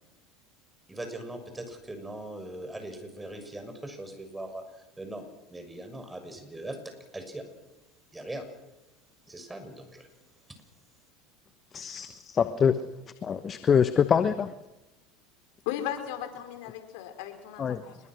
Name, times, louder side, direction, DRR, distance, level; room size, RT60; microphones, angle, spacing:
voice 1, 0.9-6.8 7.1-7.4 8.1-8.4 9.3-10.1, right 1 dB, 10° right, 6 dB, 6.7 m, -40 dB
voice 2, 11.7-12.8 13.2-14.5 17.6-17.8, left 7 dB, 35° left, 11 dB, 1.2 m, -25 dB
voice 3, 15.6-18.0, left 11 dB, 70° left, 7 dB, 4.7 m, -36 dB
28.0 x 22.0 x 6.4 m, 1.0 s
hypercardioid pair, 85°, 0 cm